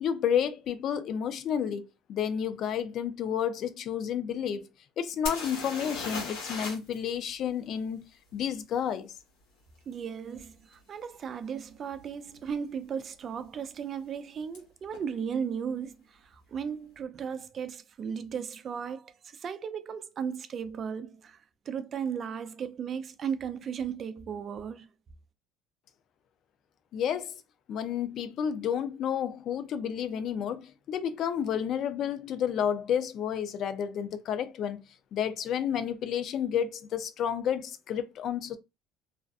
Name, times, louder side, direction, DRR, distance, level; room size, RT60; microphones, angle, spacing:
voice 1, 0.0-4.7 5.0-9.1 26.9-27.4 27.7-38.6, left 8 dB, 55° left, 0.4 m, -31 dB
sound 1, 5.2-7.0 7.2-7.3 10.7-10.8 11.5-11.7 11.9-12.5 14.5-14.6 14.9-15.0, left 3 dB, 85° left, 1.1 m, -37 dB
voice 2, 9.9-24.9, right 7 dB, 45° right, 0.3 m, -36 dB
2.4 x 2.2 x 2.3 m
supercardioid pair, 90°, 0 cm